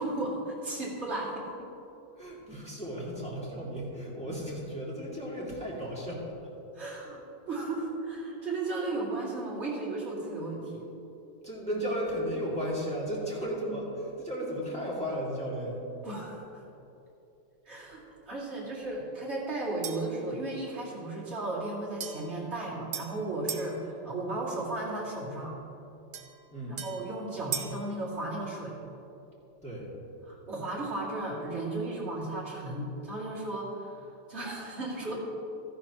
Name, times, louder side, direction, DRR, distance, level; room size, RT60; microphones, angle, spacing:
voice 1, 0.0-1.7 6.7-7.2 7.5-10.9 16.0-16.6 17.7-18.0 18.3-25.5 26.7-28.7 30.3-35.2, right 2 dB, 35° right, -6 dB, 2.7 m, -35 dB
voice 2, 2.2-6.2 11.4-15.8 26.5-26.8 29.6-29.9, equal, 5° left, -7 dB, 2.4 m, -34 dB
sound 1, 19.8-20.2 22.0-23.7 26.1-27.9, right 8 dB, 65° right, 0.7 m, -39 dB
13.5 x 11.5 x 3.0 m, 3.0 s
omnidirectional pair, 2.0 m